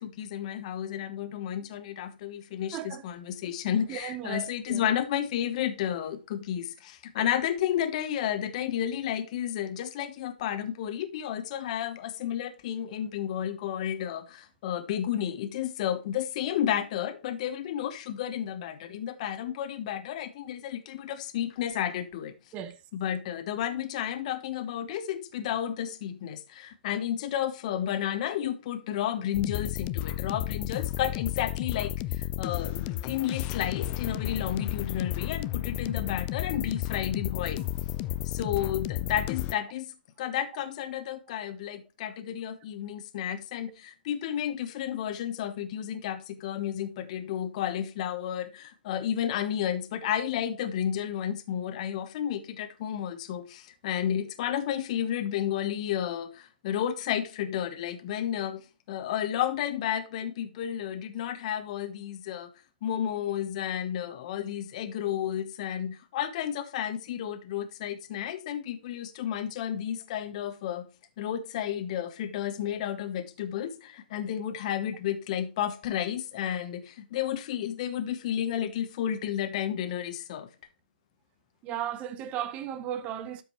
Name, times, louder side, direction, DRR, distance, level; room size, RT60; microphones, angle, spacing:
voice 1, 0.0-22.3 22.9-37.7 38.2-62.5 62.8-70.9 71.2-80.5, left 10 dB, 40° left, 1.1 m, -32 dB
voice 2, 2.7-3.0 3.9-4.9 22.5-22.8 81.6-83.4, right 10 dB, 25° right, 0.8 m, -35 dB
sound 1, 29.3-39.5, left 14 dB, 25° left, 0.4 m, -32 dB
12.5 x 5.2 x 3.1 m
hypercardioid pair, 135°, 5 cm